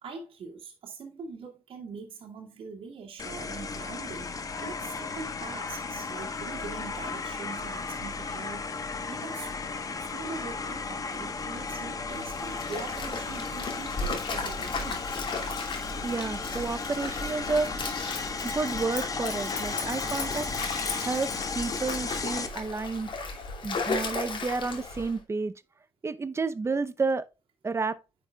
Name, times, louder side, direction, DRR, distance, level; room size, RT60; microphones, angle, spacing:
voice 1, 0.0-9.5 10.0-15.1 15.9-16.0, right 4 dB, 70° right, 2.1 m, -43 dB
sound 1, 3.2-22.5, left 4 dB, 40° left, 1.2 m, -35 dB
Stream, 12.1-25.2, left 3 dB, 60° left, 2.7 m, -35 dB
voice 2, 16.0-18.0 18.4-20.5 20.9-23.3 23.6-25.6 26.0-27.2 27.6-28.0, right 4 dB, 30° right, 0.8 m, -31 dB
9.7 x 6.2 x 2.4 m
cardioid pair, 95°, 9 cm